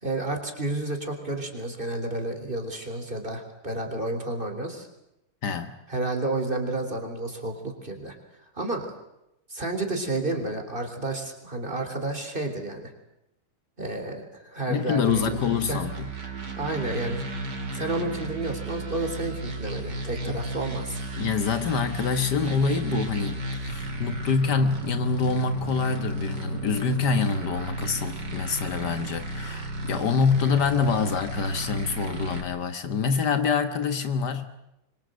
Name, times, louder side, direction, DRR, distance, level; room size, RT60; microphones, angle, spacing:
voice 1, 0.0-4.9 5.9-8.2 8.5-8.9 9.5-12.9 13.8-15.4 15.7-15.8 16.6-17.2 17.7-21.0, right 2 dB, 30° right, 3.9 m, -31 dB
voice 2, 5.4-5.7 14.7-16.1 20.3-20.4 21.2-34.5, left 5 dB, 75° left, 1.9 m, -26 dB
sound 1, 15.1-32.4, right 2 dB, 85° right, 3.6 m, -34 dB
25.0 x 23.5 x 8.0 m
omnidirectional pair, 1.8 m